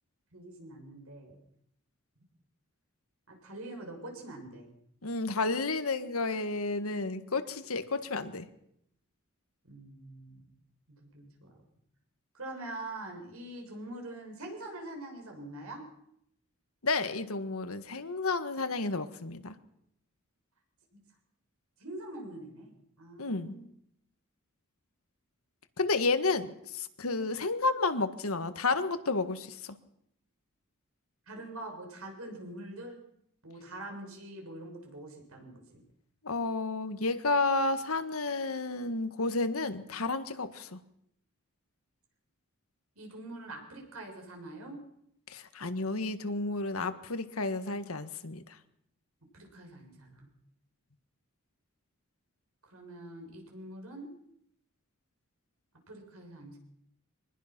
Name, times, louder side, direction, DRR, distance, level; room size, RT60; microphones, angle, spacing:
voice 1, 0.3-1.4 3.3-4.7 9.6-10.5 10.9-11.6 12.3-15.8 20.9-21.0 21.8-22.7 23.0-23.7 31.3-33.0 33.4-35.8 43.0-44.8 49.3-50.3 52.6-54.1 55.9-56.6, right 1 dB, 85° right, 2 dB, 6.7 m, -44 dB
voice 2, 5.0-8.5 16.8-19.5 23.2-23.6 25.8-29.7 36.2-40.8 45.3-48.6, left 3 dB, 80° left, 10 dB, 1.6 m, -31 dB
24.5 x 20.0 x 6.1 m, 0.75 s
head